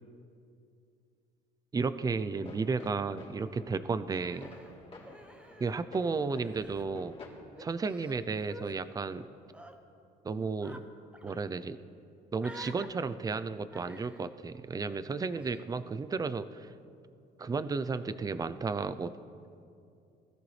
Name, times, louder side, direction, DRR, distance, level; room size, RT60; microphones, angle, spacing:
voice 1, 1.7-4.5 5.6-7.2 7.6-9.3 10.2-10.8 11.2-11.8 12.3-16.7 17.4-19.1, right 4 dB, 20° right, 12 dB, 0.5 m, -33 dB
sound 1, 2.3-7.3, left 3 dB, 35° left, 3.4 m, -51 dB
Human voice, 4.1-6.0 6.3-6.8 7.5-8.8 9.4-9.7 10.6-10.8 11.1-11.4 12.4-12.9 13.7-14.2 15.3-15.6, equal, 5° right, 1.1 m, -50 dB
21.0 x 13.5 x 3.3 m, 2.5 s
cardioid pair, 110°, 17 cm